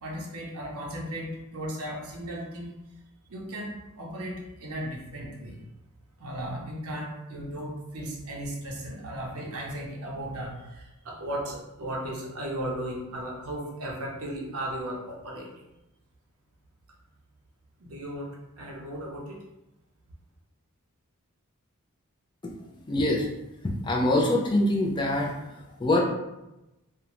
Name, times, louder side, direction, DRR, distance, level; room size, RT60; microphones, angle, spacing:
voice 1, 0.0-2.7 3.3-5.6 6.2-15.6 17.8-19.4, right 1 dB, 80° right, -2 dB, 0.6 m, -36 dB
voice 2, 22.9-23.3 23.6-26.0, left 1 dB, 20° left, -1 dB, 0.3 m, -24 dB
2.5 x 2.1 x 2.9 m, 0.96 s
head